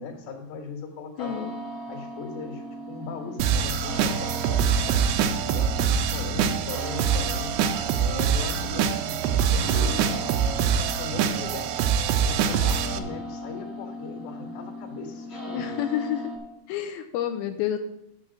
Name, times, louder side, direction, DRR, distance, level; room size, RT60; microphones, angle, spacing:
voice 1, 0.0-1.5 1.9-5.1 5.5-7.6 7.9-11.7 12.2-15.8, left 4 dB, 70° left, 1 dB, 3.1 m, -38 dB
voice 2, 1.2-1.6 5.8-5.9 15.5-16.3 16.7-17.8, left 11 dB, 85° left, 8 dB, 2.2 m, -29 dB
sound 1, 1.2-16.4, equal, 10° left, 1.0 m, -38 dB
sound 2, 3.4-13.0, right 7 dB, 80° right, 2.5 m, -24 dB
7.0 x 6.6 x 6.1 m, 0.88 s
omnidirectional pair, 4.8 m